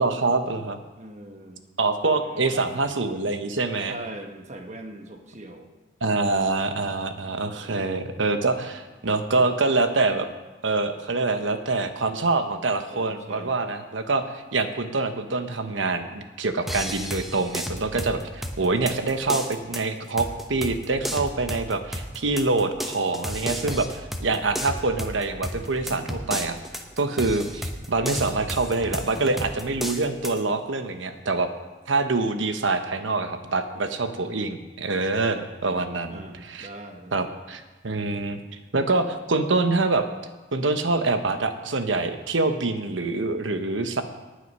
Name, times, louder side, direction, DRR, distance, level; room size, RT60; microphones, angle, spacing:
voice 1, 0.0-0.8 1.8-4.0 6.0-10.3 10.6-26.6 27.0-31.5 31.9-36.7 37.1-38.4 38.7-40.1 40.5-44.0, right 3 dB, 85° right, 8 dB, 1.0 m, -25 dB
voice 2, 1.0-1.6 2.2-2.7 3.9-5.7 7.5-7.9 12.9-13.5 23.6-23.8 36.1-37.2, right 1 dB, 35° right, 4 dB, 1.2 m, -41 dB
sound 1, 16.7-30.4, equal, ahead, 0.8 m, -34 dB
19.0 x 6.4 x 5.5 m, 1.2 s
head